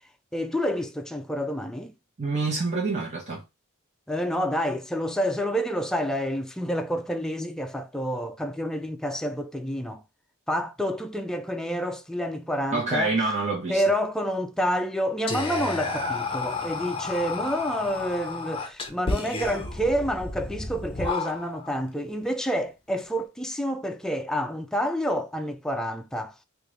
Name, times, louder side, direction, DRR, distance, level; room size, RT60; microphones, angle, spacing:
voice 1, 0.3-1.9 4.1-10.0 10.5-13.1 13.7-26.3, equal, 5° left, 0.3 m, -28 dB
voice 2, 2.2-3.4 12.7-13.8, right 3 dB, 35° right, 1.0 m, -26 dB
Whispering, 15.3-21.7, left 3 dB, 25° left, 0.7 m, -31 dB
3.7 x 2.5 x 3.2 m
head